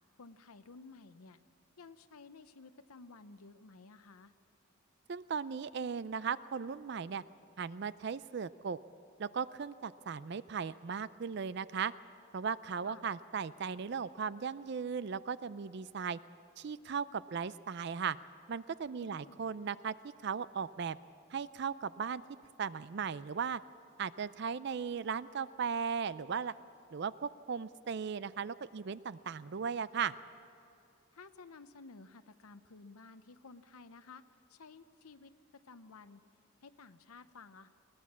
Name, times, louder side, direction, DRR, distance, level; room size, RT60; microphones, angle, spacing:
voice 1, 0.2-1.4 1.8-4.3 12.8-13.1 19.0-19.4 31.1-34.2 34.5-35.3 35.7-36.2 36.6-37.7, left 4 dB, 90° left, 11 dB, 0.8 m, -54 dB
voice 2, 5.1-7.2 7.6-8.8 9.2-11.9 12.3-16.2 16.6-18.2 18.5-19.9 20.2-21.0 21.3-22.2 22.6-23.6 24.0-26.5 26.9-30.1, right 6 dB, 50° right, 16 dB, 0.4 m, -37 dB
21.5 x 18.5 x 7.3 m, 3.0 s
head